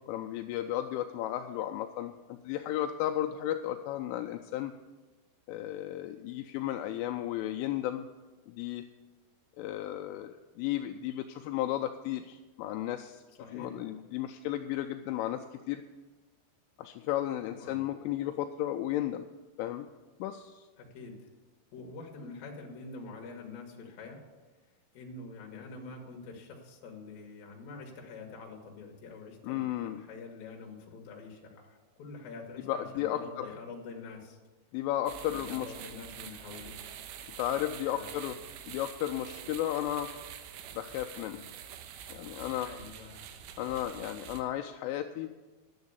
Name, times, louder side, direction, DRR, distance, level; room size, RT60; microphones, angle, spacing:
voice 1, 0.1-4.7 5.5-8.1 8.5-8.8 9.6-13.2 13.5-15.8 16.8-19.2 19.6-19.9 20.2-20.7 29.4-30.0 32.7-33.5 34.7-35.7 37.4-38.4 38.7-40.1 40.8-41.5 42.1-42.7 43.6-45.3, left 12 dB, 85° left, 5 dB, 2.9 m, -34 dB
voice 2, 13.4-13.8 17.5-17.8 20.8-21.3 21.7-24.2 24.9-34.4 35.3-36.8 37.9-38.2 42.6-43.4, left 4 dB, 60° left, 1 dB, 2.9 m, -46 dB
sound 1, 35.1-44.4, right 9 dB, 85° right, 3.3 m, -46 dB
11.0 x 7.2 x 8.1 m, 1.2 s
omnidirectional pair, 5.8 m